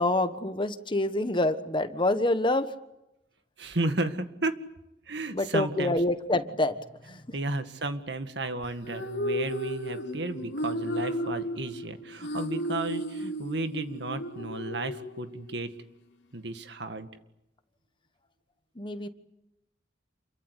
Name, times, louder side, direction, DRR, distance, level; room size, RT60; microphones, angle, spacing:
voice 1, 0.0-2.7 5.3-6.8 7.1-7.2 18.8-19.1, left 2 dB, 25° left, 10 dB, 1.3 m, -26 dB
voice 2, 3.6-4.6 5.1-6.0 7.3-15.7 16.3-17.1, right 2 dB, 65° right, 9 dB, 2.0 m, -33 dB
sound 1, 8.6-15.7, equal, 75° left, 3.3 m, -34 dB
29.0 x 23.0 x 8.3 m, 0.88 s
head